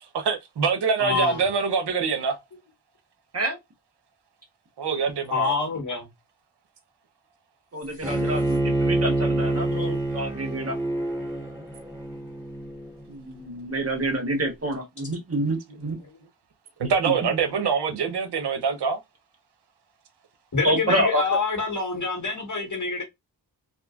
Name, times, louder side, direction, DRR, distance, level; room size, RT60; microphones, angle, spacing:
voice 1, 0.1-2.4 4.8-5.6 16.8-19.0, right 5 dB, 80° right, 0.8 m, -24 dB
voice 2, 1.0-1.5 5.3-6.1 8.0-8.1 20.5-23.0, left 4 dB, 50° left, 1.4 m, -26 dB
voice 3, 7.7-10.8 13.1-16.0 17.0-17.3 20.6-21.4, right 1 dB, 35° right, 1.2 m, -27 dB
Bowed string instrument, 8.0-13.1, right 1 dB, 5° right, 1.9 m, -27 dB
2.9 x 2.6 x 2.3 m
cardioid pair, 50°, 40 cm